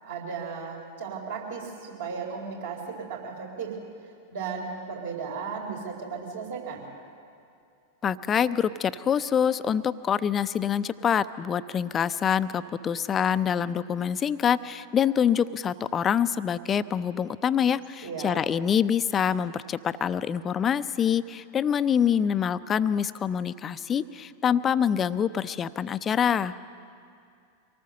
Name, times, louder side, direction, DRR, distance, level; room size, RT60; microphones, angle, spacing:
voice 1, 0.0-3.8 4.0-6.9 18.0-18.4, right 5 dB, 60° right, 0 dB, 4.2 m, -35 dB
voice 2, 8.0-26.5, left 8 dB, 25° left, 14 dB, 0.6 m, -25 dB
25.0 x 19.0 x 6.6 m, 2.4 s
figure-of-eight pair, 90°, 0 cm